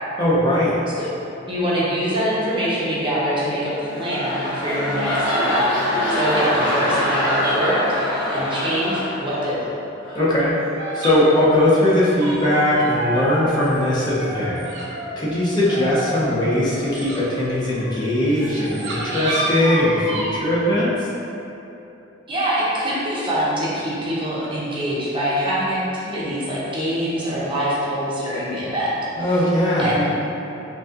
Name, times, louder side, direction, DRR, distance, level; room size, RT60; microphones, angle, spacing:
voice 1, 0.2-0.8 10.1-10.5 10.9-14.6 15.2-20.9 29.2-29.9, left 1 dB, 25° left, -8 dB, 0.6 m, -19 dB
voice 2, 1.5-9.7 22.3-28.9 29.2-29.4 29.8-30.1, equal, 25° right, -8 dB, 0.7 m, -24 dB
sound 1, 3.7-9.7 10.0-10.3, left 1 dB, 65° left, 1.2 m, -23 dB
sound 2, 10.8-15.2 15.6-20.4, right 1 dB, 75° right, 0.7 m, -30 dB
5.2 x 2.3 x 2.4 m, 2.9 s
head